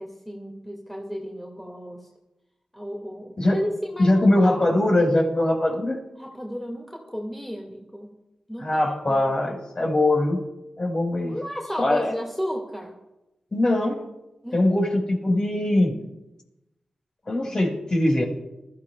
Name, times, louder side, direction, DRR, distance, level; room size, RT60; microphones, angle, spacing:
voice 1, 0.0-2.1 2.7-4.7 6.2-8.2 8.5-8.7 9.0-9.3 11.2-12.9 14.4-14.6, equal, 5° left, -1 dB, 2.2 m, -33 dB
voice 2, 4.0-6.0 8.6-10.4 10.8-11.4 11.8-12.1 13.5-14.0 14.5-16.0 17.3-18.2, left 1 dB, 40° left, 0 dB, 4.7 m, -21 dB
21.0 x 13.5 x 2.4 m, 0.96 s
cardioid pair, 45°, 2 cm